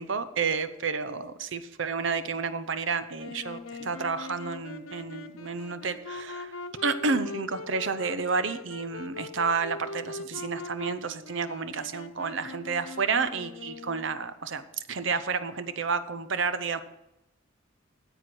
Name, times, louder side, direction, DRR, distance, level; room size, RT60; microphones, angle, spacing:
voice 1, 0.0-6.5 6.8-14.6 14.9-16.8, right 5 dB, 65° right, 12 dB, 0.7 m, -30 dB
Wind instrument woodwind instrument, 3.2-14.3, left 3 dB, 75° left, 0.9 m, -41 dB
9.4 x 8.0 x 6.1 m, 0.94 s
head